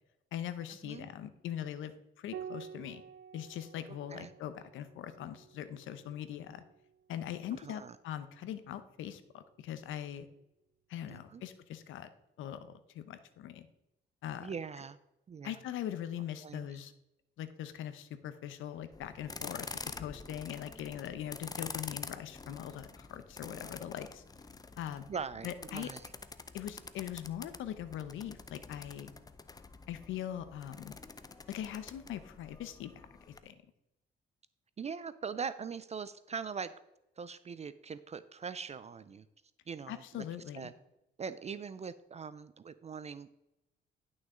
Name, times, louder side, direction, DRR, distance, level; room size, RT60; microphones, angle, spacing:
voice 1, 0.3-3.0 3.3-6.6 7.1-10.3 10.9-12.1 12.4-13.7 14.2-14.5 15.4-16.9 17.4-19.7 20.0-24.2 24.8-25.1 25.4-25.9 26.5-29.1 29.9-31.0 31.5-33.5 39.9-40.7, left 10 dB, 85° left, 12 dB, 0.8 m, -41 dB
Piano, 2.3-7.2 8.8-9.6, right 8 dB, 80° right, 0.6 m, -50 dB
voice 2, 7.6-8.0 11.1-11.4 14.4-15.0 15.3-15.6 16.4-16.8 25.1-26.1 34.8-36.7 37.2-39.3 39.7-40.3 40.5-40.7 41.2-43.3, right 6 dB, 35° right, 14 dB, 0.4 m, -41 dB
sound 1, 18.9-33.4, left 4 dB, 20° left, 0.6 m, -47 dB
11.0 x 6.3 x 3.8 m, 0.89 s
cardioid pair, 90°, 20 cm